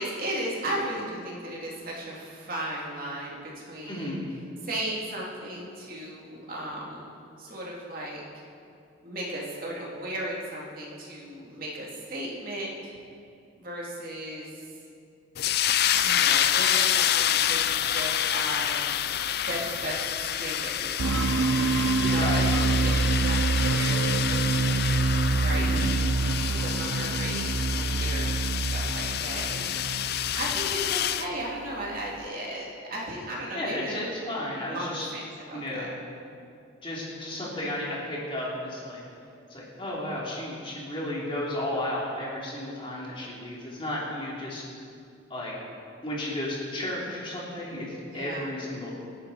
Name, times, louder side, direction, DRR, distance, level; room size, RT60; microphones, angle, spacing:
voice 1, 0.0-4.1 4.6-7.1 7.4-8.4 9.0-12.9 13.6-14.7 15.8-19.0 19.4-30.0 30.4-34.1 34.7-35.9 48.1-48.4, right 1 dB, 45° right, -4 dB, 3.0 m, -36 dB
voice 2, 3.9-4.2 22.1-22.5 25.6-25.9 33.5-35.1 35.5-35.9 36.8-39.0 39.5-44.6 45.3-45.5 46.0-48.9, left 1 dB, 25° left, -5 dB, 3.3 m, -33 dB
sound 1, 15.4-31.3, left 10 dB, 50° left, 0.5 m, -28 dB
sound 2, 21.0-30.6, right 3 dB, 80° right, 0.6 m, -26 dB
26.0 x 10.5 x 4.4 m, 2.4 s
head